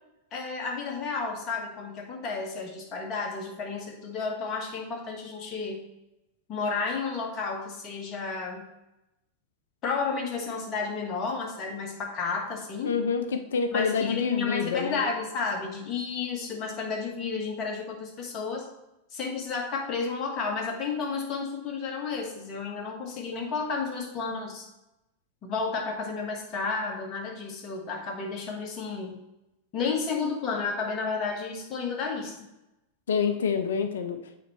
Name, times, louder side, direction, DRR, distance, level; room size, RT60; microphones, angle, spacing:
voice 1, 0.3-5.8 6.5-8.6 9.8-13.0 13.7-18.6 19.1-24.7 25.4-29.2 29.7-32.3, left 4 dB, 35° left, 1 dB, 1.4 m, -32 dB
voice 2, 12.8-15.0 33.1-34.4, left 5 dB, 65° left, 8 dB, 0.5 m, -27 dB
7.9 x 4.5 x 3.1 m, 0.93 s
figure-of-eight pair, 90°, 0 cm